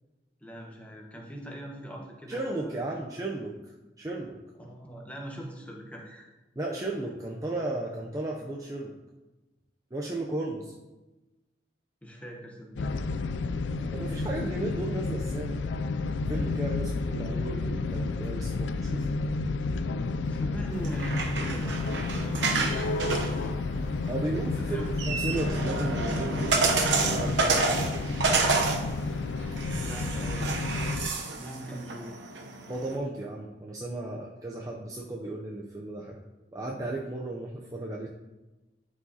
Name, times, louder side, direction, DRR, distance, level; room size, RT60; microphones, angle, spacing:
voice 1, 0.4-3.1 4.6-6.3 12.0-12.9 20.2-21.8 22.1-23.6 24.6-24.9 29.8-30.9 31.4-32.2, right 1 dB, 10° left, 0 dB, 1.1 m, -42 dB
voice 2, 2.3-4.4 6.6-8.9 9.9-10.7 13.7-15.6 16.3-19.1 24.1-24.8 25.0-27.9 32.7-36.2 36.5-38.1, right 2 dB, 20° right, -2 dB, 0.5 m, -35 dB
sound 1, 12.8-31.1, left 3 dB, 85° left, 0.4 m, -31 dB
sound 2, 20.7-32.9, right 3 dB, 80° right, 0.8 m, -30 dB
12.0 x 4.8 x 2.8 m, 1.1 s
head